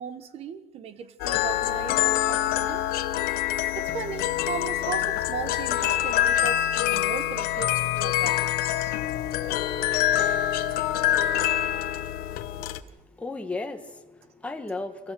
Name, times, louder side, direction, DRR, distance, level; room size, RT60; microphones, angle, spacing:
voice 1, 0.0-2.8 3.7-8.9, right 7 dB, 40° right, 11 dB, 1.3 m, -37 dB
sound 1, 1.2-12.8, left 12 dB, 70° left, 1.2 m, -25 dB
voice 2, 12.5-15.1, left 3 dB, 10° left, 5 dB, 1.3 m, -36 dB
29.5 x 14.5 x 6.2 m, 1.1 s
cardioid pair, 175°, 16 cm